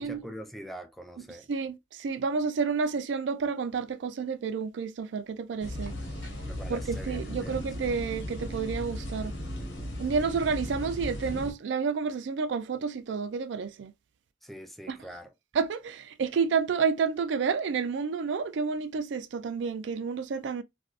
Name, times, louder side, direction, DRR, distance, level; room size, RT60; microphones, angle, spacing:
voice 1, 0.0-1.5 6.4-7.7 14.4-15.3, right 1 dB, ahead, 0.4 m, -44 dB
voice 2, 1.5-5.9 6.7-9.3 10.0-13.9 14.9-15.0 15.5-20.6, right 5 dB, 80° right, 0.4 m, -30 dB
sound 1, 5.6-11.5, equal, 90° left, 1.3 m, -36 dB
3.2 x 2.6 x 2.4 m
head